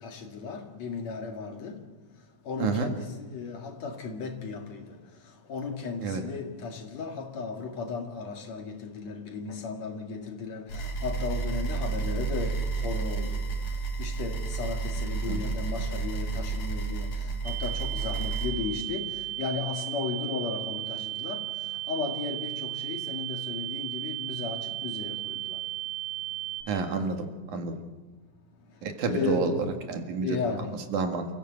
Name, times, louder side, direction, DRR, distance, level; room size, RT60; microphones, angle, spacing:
voice 1, 0.0-1.8 2.5-4.9 5.5-13.4 14.0-21.5 21.9-25.6 29.1-29.6 30.2-30.8, left 5 dB, 65° left, 3.3 m, -35 dB
voice 2, 2.6-2.9 6.0-6.2 15.3-15.4 26.7-27.2 27.5-27.8 28.8-29.5 29.9-30.4 30.9-31.3, right 5 dB, 85° right, 3.3 m, -29 dB
sound 1, 10.7-18.5, right 4 dB, 90° left, 4.9 m, -31 dB
sound 2, 17.4-26.6, right 16 dB, 65° right, 5.6 m, -35 dB
28.0 x 15.0 x 8.0 m
omnidirectional pair, 3.4 m